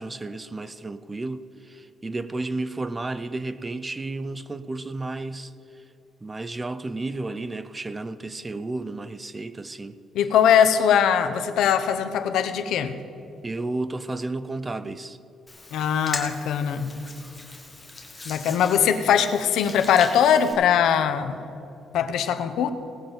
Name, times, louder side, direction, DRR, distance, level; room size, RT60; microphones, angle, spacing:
voice 1, 0.0-5.8 6.2-10.0 13.4-15.2 18.3-18.4, right 2 dB, 15° right, 0.4 m, -32 dB
voice 2, 10.1-13.0 15.7-16.9 18.2-21.4 21.9-22.7, left 8 dB, 75° left, 0.8 m, -21 dB
Hands, 15.5-20.5, left 2 dB, 15° left, 1.6 m, -39 dB
18.5 x 7.2 x 5.3 m
cardioid pair, 135°, 0 cm